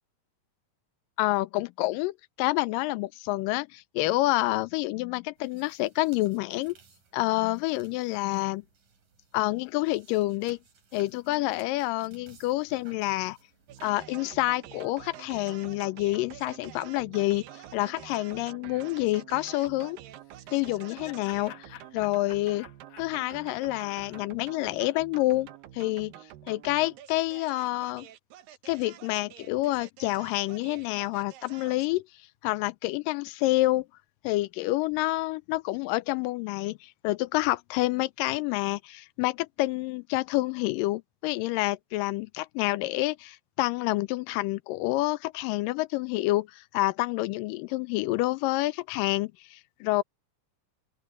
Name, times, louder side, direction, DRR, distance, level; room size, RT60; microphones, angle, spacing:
voice 1, 1.2-6.8 7.1-8.6 9.3-10.6 10.9-13.4 13.8-17.4 17.7-20.0 20.5-22.7 23.0-25.5 25.7-26.1 26.5-28.1 28.7-32.0 32.4-33.9 34.2-50.0, left 19 dB, 85° left, 2.2 m, -28 dB
sound 1, 5.4-13.9, right 5 dB, 70° right, 6.0 m, -60 dB
sound 2, 13.7-32.0, right 12 dB, 85° right, 2.9 m, -48 dB
Laughter, 20.2-25.4, left 13 dB, 70° left, 1.8 m, -50 dB
open air
omnidirectional pair, 3.9 m